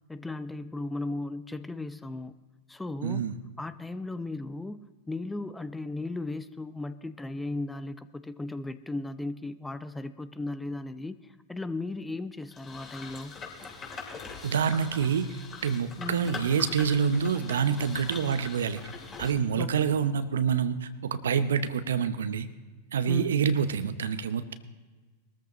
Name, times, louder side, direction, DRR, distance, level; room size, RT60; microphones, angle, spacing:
voice 1, 0.1-2.3 2.7-3.3 3.6-4.8 5.1-13.3 16.0-16.3 19.6-20.0 23.1-23.3, left 2 dB, 10° left, 12 dB, 0.6 m, -36 dB
voice 2, 3.0-3.3 14.4-18.8 19.2-22.5 22.9-24.5, right 7 dB, 70° right, 12 dB, 0.8 m, -27 dB
sound 1, 12.5-19.3, left 5 dB, 30° left, 3.1 m, -42 dB
21.5 x 13.5 x 3.1 m, 1.3 s
figure-of-eight pair, 95°, 0 cm